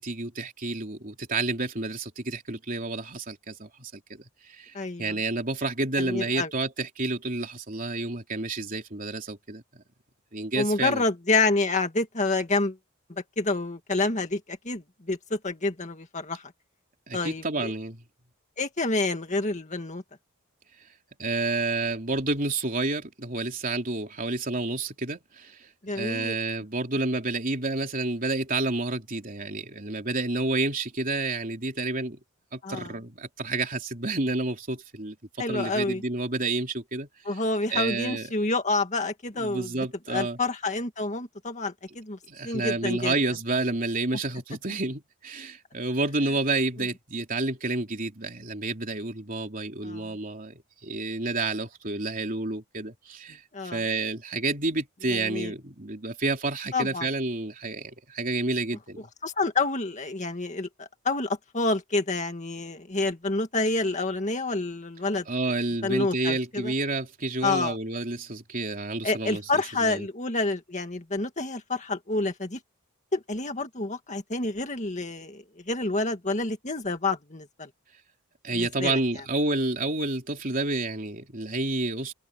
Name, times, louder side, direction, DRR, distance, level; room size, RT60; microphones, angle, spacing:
voice 1, 0.0-4.2 4.5-4.7 5.0-9.6 10.3-11.0 17.1-18.0 21.2-25.7 25.9-32.2 32.5-35.2 35.5-37.4 37.7-38.3 39.4-40.4 42.3-53.4 53.7-59.1 65.3-70.1 78.4-82.1, right 2 dB, 40° right, 3.5 m, -30 dB
voice 2, 4.7-5.2 6.0-6.5 10.6-12.8 13.4-16.4 17.1-17.7 18.6-20.0 25.8-26.4 32.6-32.9 35.4-36.0 37.3-39.7 40.1-42.2 42.4-43.1 49.8-50.1 53.5-53.8 55.1-55.5 56.7-57.1 59.2-65.3 65.8-66.7 67.4-67.8 69.0-72.6 73.1-77.7 78.5-79.0, left 3 dB, 30° left, 2.0 m, -28 dB
head